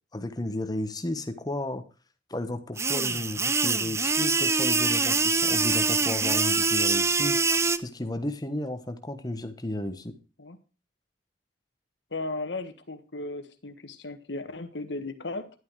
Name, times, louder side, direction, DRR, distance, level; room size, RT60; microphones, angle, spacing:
voice 1, 0.1-1.8 2.3-7.4 7.8-10.1, left 1 dB, 20° left, 9 dB, 1.3 m, -33 dB
sound 1, 2.8-7.8, right 4 dB, 15° right, 0.5 m, -24 dB
voice 2, 12.1-15.5, left 2 dB, 85° left, 9 dB, 1.5 m, -36 dB
11.5 x 9.2 x 4.8 m, 0.34 s
head